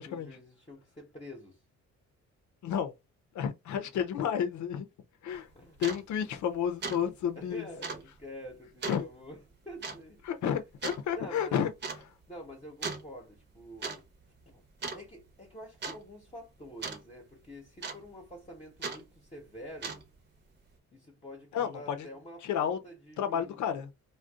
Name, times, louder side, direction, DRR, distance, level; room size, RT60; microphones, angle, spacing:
voice 1, 0.0-1.6 5.5-5.8 7.3-9.4 9.6-10.2 11.1-11.6 12.3-14.1 14.5-14.6 14.9-20.0 20.9-23.8, equal, 20° left, 1.0 m, -47 dB
voice 2, 3.3-4.9 5.2-5.5 5.8-7.6 8.9-9.1 10.3-11.7 21.5-22.1 22.4-22.8 23.2-23.9, left 8 dB, 70° left, 0.7 m, -31 dB
sound 1, 5.3-5.4 5.8-6.0 6.4-6.6 6.8-7.0 7.3-7.4 7.8-8.0 8.8-9.0 9.8-10.0 10.8-11.0 11.8-12.0 12.8-13.1 13.6-14.0 14.2-14.5 14.8-15.3 15.8-16.0 16.8-17.0 17.8-18.2 18.8-19.0 19.7-20.2, right 4 dB, 35° right, 0.9 m, -37 dB
2.5 x 2.3 x 3.5 m
cardioid pair, 90°, 30 cm